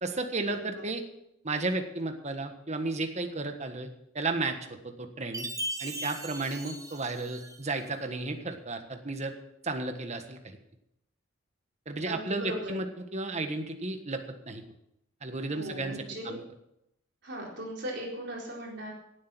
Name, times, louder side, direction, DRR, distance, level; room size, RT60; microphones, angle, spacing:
voice 1, 0.0-1.0 1.4-3.9 4.1-4.6 4.8-5.5 5.8-9.3 9.6-10.6 11.9-12.9 13.1-14.6 15.2-16.4, right 2 dB, 35° right, 6 dB, 1.4 m, -33 dB
Chime, 5.3-7.8, right 1 dB, 15° right, 1.3 m, -38 dB
voice 2, 12.1-12.8 15.5-16.4 17.2-18.9, equal, 60° right, -2 dB, 4.1 m, -38 dB
17.0 x 8.0 x 6.2 m, 0.82 s
head